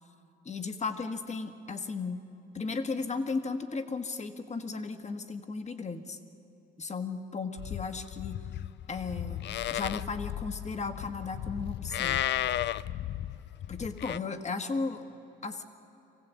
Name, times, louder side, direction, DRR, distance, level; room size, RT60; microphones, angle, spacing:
voice 1, 0.5-2.2 2.5-6.2 6.8-8.4 8.9-12.2 13.7-15.1 15.4-15.6, left 4 dB, 35° left, 7 dB, 1.7 m, -35 dB
Livestock farm animals working animals, 7.6-14.2, left 12 dB, 60° left, 0.5 m, -34 dB
24.5 x 16.0 x 8.4 m, 2.9 s
cardioid pair, 90°, 20 cm